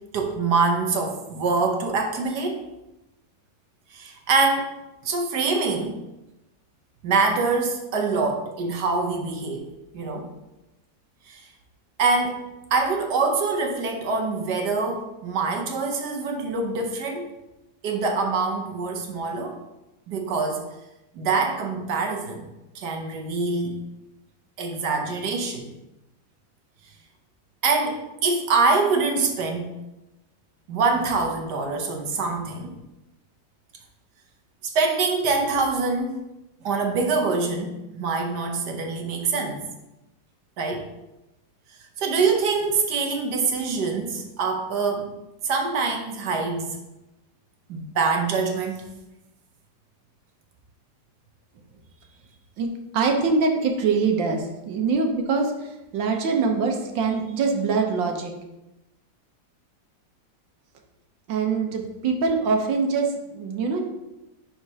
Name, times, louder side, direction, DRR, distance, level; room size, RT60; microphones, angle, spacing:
voice 1, 0.1-2.7 3.9-4.7 5.0-6.0 7.0-10.3 11.3-11.4 12.0-12.4 12.7-17.3 17.8-19.6 20.1-20.6 21.1-22.5 22.7-23.8 24.6-25.7 27.6-29.7 30.7-32.7 34.6-36.2 36.6-39.6 40.6-40.9 42.0-45.1 45.4-46.8 47.7-48.9, right 4 dB, 65° right, 3 dB, 1.4 m, -25 dB
voice 2, 52.6-58.3 61.3-63.8, right 4 dB, 80° right, 3 dB, 1.6 m, -24 dB
10.5 x 4.3 x 2.8 m, 0.96 s
omnidirectional pair, 2.0 m